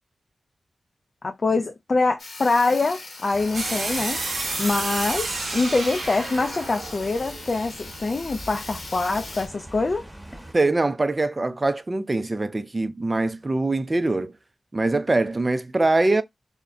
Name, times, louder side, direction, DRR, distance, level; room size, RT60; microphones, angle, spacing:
voice 1, 1.2-4.2 4.6-10.0, left 3 dB, 55° left, 0.3 m, -24 dB
Sawing, 2.2-9.5, left 2 dB, 70° left, 0.9 m, -40 dB
sound 1, 3.3-10.5, right 1 dB, 15° right, 0.9 m, -43 dB
sound 2, 3.5-8.4, right 2 dB, 75° right, 0.8 m, -31 dB
voice 2, 10.5-14.3 14.7-16.2, right 2 dB, 35° right, 0.4 m, -23 dB
2.1 x 2.1 x 3.6 m
cardioid pair, 40°, 0 cm